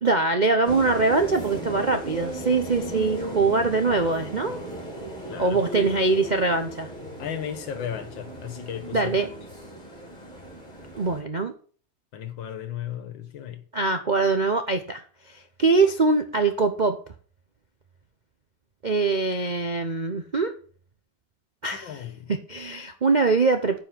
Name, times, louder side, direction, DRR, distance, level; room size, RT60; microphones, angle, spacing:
voice 1, 0.0-4.6 5.4-6.9 8.9-9.3 10.9-11.5 13.7-17.0 18.8-20.5 21.6-23.8, right 3 dB, 50° right, 0.5 m, -23 dB
sound 1, 0.6-11.2, right 1 dB, 25° left, 3.9 m, -36 dB
voice 2, 7.2-9.3 12.1-13.6 21.8-22.3, left 9 dB, 75° left, 2.0 m, -35 dB
9.5 x 5.5 x 7.5 m
omnidirectional pair, 2.1 m